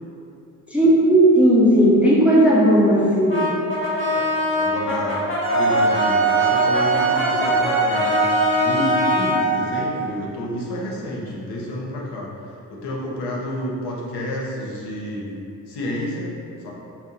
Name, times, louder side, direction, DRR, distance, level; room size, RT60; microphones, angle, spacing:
voice 1, 0.7-3.5, right 1 dB, 5° right, -7 dB, 0.5 m, -15 dB
Brass instrument, 3.3-9.5, left 2 dB, 25° left, 1.0 m, -23 dB
voice 2, 4.6-5.2 5.5-12.3 12.7-15.4 15.7-16.3 16.6-16.7, left 1 dB, 60° left, -3 dB, 0.6 m, -30 dB
Wind instrument woodwind instrument, 5.4-9.9, right 4 dB, 55° right, 1.0 m, -21 dB
2.6 x 2.0 x 2.6 m, 2.6 s
hypercardioid pair, 45°, 44 cm